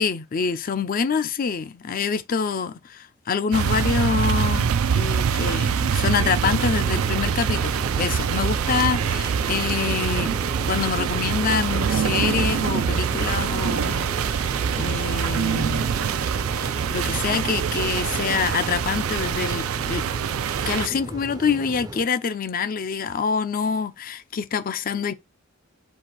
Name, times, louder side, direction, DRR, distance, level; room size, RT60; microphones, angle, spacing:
voice 1, 0.0-10.3 10.6-15.9 16.6-20.0 20.7-25.1, left 6 dB, 45° left, 0.4 m, -26 dB
sound 1, 3.5-20.9, right 7 dB, 85° right, 0.4 m, -24 dB
sound 2, 6.4-22.1, right 2 dB, 20° right, 0.4 m, -35 dB
4.2 x 2.5 x 4.4 m
head